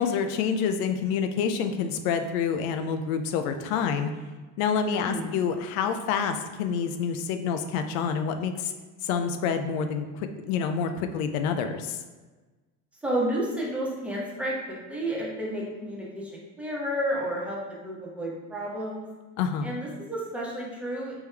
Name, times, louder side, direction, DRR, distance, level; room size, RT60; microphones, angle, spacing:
voice 1, 0.0-4.1 4.6-8.7 9.0-12.0 19.4-19.7, left 6 dB, 80° left, 7 dB, 0.5 m, -27 dB
voice 2, 4.9-5.4 13.0-19.1 19.6-21.2, right 1 dB, 5° right, -5 dB, 1.1 m, -31 dB
3.5 x 3.1 x 3.3 m, 1.3 s
supercardioid pair, 90°, 43 cm